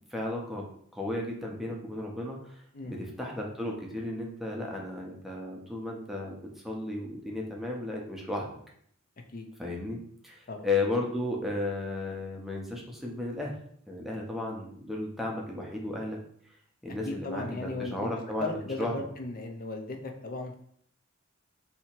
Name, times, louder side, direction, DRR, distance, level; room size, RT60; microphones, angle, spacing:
voice 1, 0.1-0.7 0.9-2.4 2.9-8.5 9.6-13.5 13.9-16.2 16.8-19.0, left 2 dB, ahead, -2 dB, 0.7 m, -34 dB
voice 2, 2.7-3.1 9.3-9.5 10.5-10.7 17.0-18.1 18.4-20.6, left 3 dB, 45° left, 4 dB, 0.6 m, -36 dB
2.8 x 2.8 x 4.3 m, 0.64 s
head